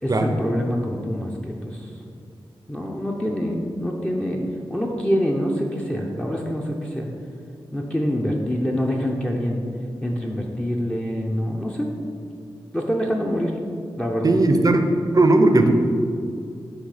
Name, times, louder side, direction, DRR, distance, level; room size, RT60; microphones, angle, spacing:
voice 1, 0.0-1.9 2.7-4.4 4.7-7.1 7.7-9.6 10.0-11.9 12.7-13.6 14.0-14.3, equal, 10° left, -1 dB, 0.7 m, -25 dB
voice 2, 14.2-14.8 15.1-15.7, right 2 dB, 40° right, 6 dB, 0.6 m, -16 dB
6.4 x 3.2 x 4.9 m, 2.3 s
cardioid pair, 40°, 10 cm